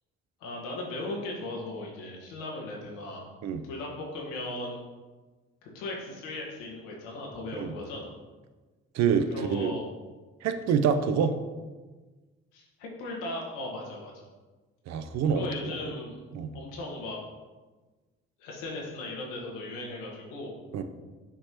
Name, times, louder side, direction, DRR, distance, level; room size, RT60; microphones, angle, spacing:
voice 1, 0.4-3.3 3.7-4.8 5.7-8.1 9.3-9.9 12.5-14.2 15.3-16.2 16.5-17.2 18.4-20.6, left 2 dB, 75° left, -2 dB, 1.6 m, -37 dB
voice 2, 8.9-9.7 10.4-11.4 14.9-15.7 16.3-16.6 20.7-20.8, right 6 dB, 60° right, 8 dB, 0.7 m, -26 dB
7.2 x 4.6 x 2.9 m, 1.3 s
hypercardioid pair, 50°, 31 cm